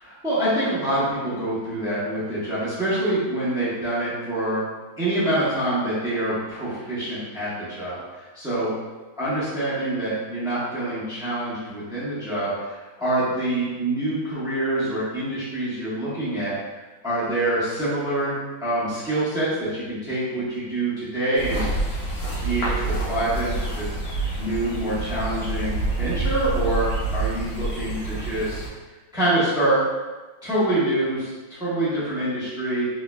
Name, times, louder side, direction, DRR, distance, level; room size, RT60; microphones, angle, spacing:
voice 1, 0.2-4.7 5.0-8.7 9.2-16.5 17.0-21.7 22.4-24.0 24.4-28.6 29.1-29.8 30.4-32.9, right 1 dB, 5° right, -11 dB, 0.7 m, -26 dB
sound 1, 21.3-28.7, right 2 dB, 85° left, 1.7 m, -27 dB
3.7 x 3.0 x 2.2 m, 1.2 s
omnidirectional pair, 2.1 m